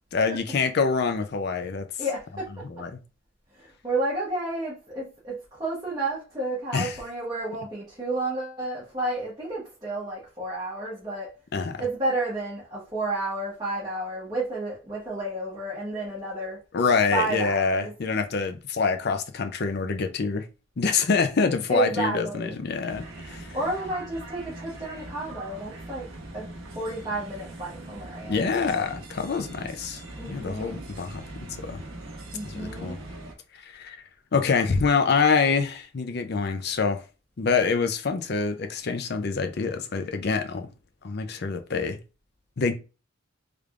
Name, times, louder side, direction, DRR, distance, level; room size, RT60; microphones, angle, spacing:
voice 1, 0.1-1.9 2.8-3.0 6.7-7.0 11.5-11.8 16.7-20.5 20.8-23.5 28.3-30.0 30.3-31.8 32.4-33.0 33.6-34.0 34.3-37.0 37.4-40.7 41.0-42.0 42.6-42.7, left 5 dB, 50° left, 0.5 m, -26 dB
voice 2, 2.0-2.9 3.5-11.3 11.8-16.6 17.1-17.9 21.7-22.6 23.5-26.1 26.3-26.5 26.7-28.9 30.2-30.8 32.3-33.0, right 2 dB, 20° right, 1.1 m, -31 dB
sound 1, 22.9-33.3, right 2 dB, 80° right, 1.0 m, -41 dB
3.3 x 3.3 x 2.4 m
head